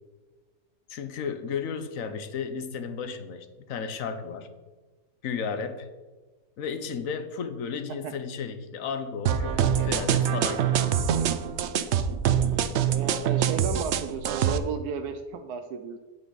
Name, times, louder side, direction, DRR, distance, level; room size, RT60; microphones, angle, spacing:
voice 1, 0.9-4.5 5.2-5.9 6.6-10.8, left 6 dB, 65° left, 10 dB, 1.2 m, -33 dB
sound 1, 9.3-14.6, right 9 dB, 65° right, 0.7 m, -25 dB
voice 2, 12.9-16.0, right 6 dB, 85° right, 7 dB, 1.2 m, -33 dB
9.0 x 8.8 x 4.0 m, 1.3 s
omnidirectional pair, 1.6 m